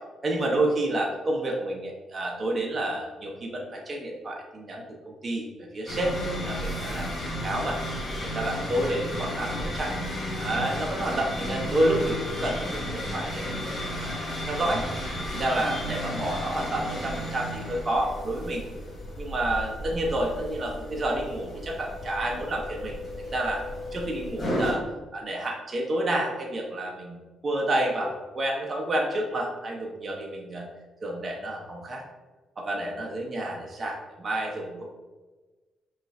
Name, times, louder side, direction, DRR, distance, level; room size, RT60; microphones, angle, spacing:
voice 1, 0.2-7.2 7.4-7.8 8.2-9.9 10.4-14.8 15.3-18.6 19.2-23.6 23.9-24.8 25.1-27.2 27.4-30.7 31.0-32.0 32.6-34.9, right 1 dB, 35° right, -1 dB, 0.7 m, -29 dB
sound 1, 5.9-24.7, equal, 35° left, 1.5 m, -33 dB
5.2 x 2.4 x 3.2 m, 1.3 s
cardioid pair, 90°, 0 cm